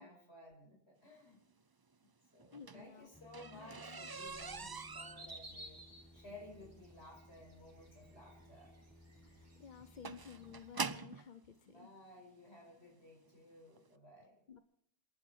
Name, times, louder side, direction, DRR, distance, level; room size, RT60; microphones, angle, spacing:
voice 1, 0.0-1.4 2.0-5.8 6.1-8.7 11.6-14.6, left 1 dB, 65° left, 0 dB, 5.8 m, -56 dB
sound 1, 2.4-11.3 12.2-12.3 12.8-13.0 13.3-13.4 13.8-13.9, right 4 dB, 35° right, 0.4 m, -45 dB
voice 2, 2.5-3.1 3.5-4.1 9.2-11.9 14.5-14.6, left 7 dB, 45° left, 10 dB, 0.9 m, -54 dB
sound 2, 3.1-10.6, left 2 dB, ahead, 1.5 m, -61 dB
sound 3, 4.3-10.9, right 1 dB, 75° right, 4.0 m, -57 dB
28.0 x 11.0 x 4.4 m, 0.71 s
omnidirectional pair, 1.2 m